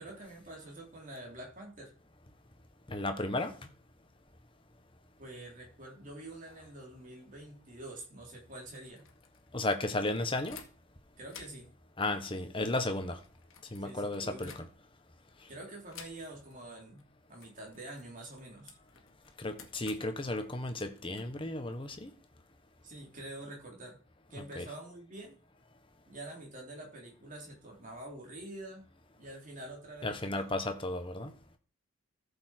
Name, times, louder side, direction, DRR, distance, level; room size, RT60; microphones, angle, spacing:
voice 1, 0.0-1.9 5.2-9.0 11.2-11.7 13.8-14.5 15.5-17.0 17.3-18.8 22.8-24.0 24.3-25.4 26.1-28.9 29.2-30.5, right 1 dB, 40° right, 3.7 m, -46 dB
voice 2, 2.9-3.5 9.5-10.6 12.0-13.2 13.7-14.7 19.4-22.1 24.3-24.7 30.0-31.3, left 2 dB, 25° left, 1.3 m, -34 dB
sound 1, 8.6-11.0 11.3-15.1 15.9-16.6 16.8-17.1 17.4-22.0, left 7 dB, 80° left, 1.9 m, -55 dB
14.0 x 7.1 x 4.6 m
head